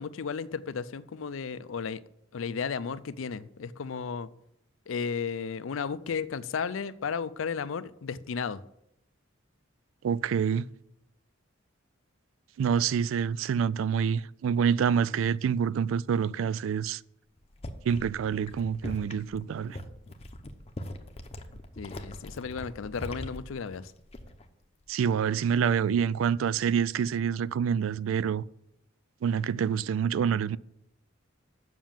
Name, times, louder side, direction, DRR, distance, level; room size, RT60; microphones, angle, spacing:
voice 1, 0.0-2.0 2.3-4.3 4.9-8.6 21.8-23.9, left 6 dB, 80° left, 0.5 m, -34 dB
voice 2, 10.0-10.7 12.6-17.0 17.9-19.8 24.9-28.4 29.2-30.6, right 7 dB, 80° right, 0.3 m, -27 dB
sound 1, 17.4-24.5 24.8-25.2, left 1 dB, 30° left, 0.8 m, -42 dB
7.3 x 6.0 x 7.3 m
head